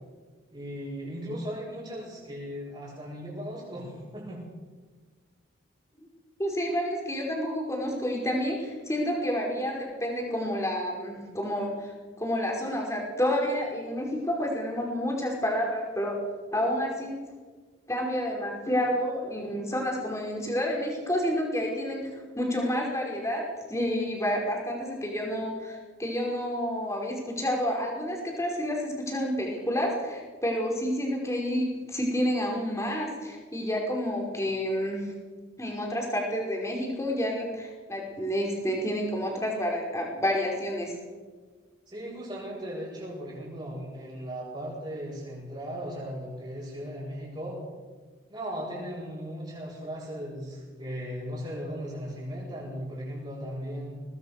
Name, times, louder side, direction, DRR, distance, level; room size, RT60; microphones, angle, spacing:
voice 1, 0.5-4.4 41.9-47.6 48.3-53.9, equal, 25° right, -8 dB, 6.6 m, -37 dB
voice 2, 6.4-11.9 12.2-16.2 16.5-17.2 17.9-35.1 35.6-40.9, equal, 15° left, -1 dB, 5.2 m, -29 dB
23.0 x 19.5 x 6.7 m, 1.4 s
head